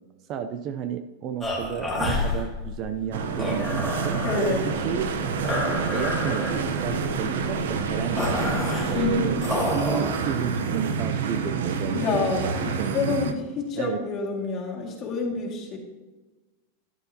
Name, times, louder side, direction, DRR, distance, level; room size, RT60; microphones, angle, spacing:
voice 1, 0.3-5.1 5.9-8.6 8.9-12.0 12.8-13.2 13.8-14.0, right 8 dB, 35° right, 9 dB, 0.5 m, -32 dB
sound 1, 1.4-10.0, left 2 dB, 5° left, 2.3 m, -30 dB
sound 2, 3.1-13.3, right 5 dB, 90° right, 0.8 m, -28 dB
voice 2, 4.2-4.6 8.9-9.3 11.9-15.8, left 4 dB, 35° left, -1 dB, 2.1 m, -28 dB
10.5 x 9.5 x 2.8 m, 1.2 s
supercardioid pair, 150°, 0 cm